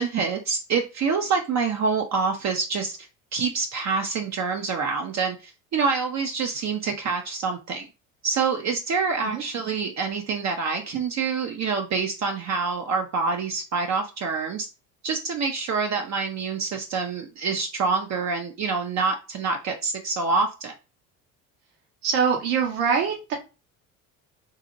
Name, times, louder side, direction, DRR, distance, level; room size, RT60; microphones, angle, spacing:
voice 1, 0.0-3.0 3.3-7.9 8.2-14.7 15.0-20.7, right 4 dB, 40° right, 0.5 m, -26 dB
voice 2, 22.0-23.3, right 6 dB, 70° right, 1.1 m, -23 dB
2.8 x 2.7 x 2.5 m
hypercardioid pair, 65°, 43 cm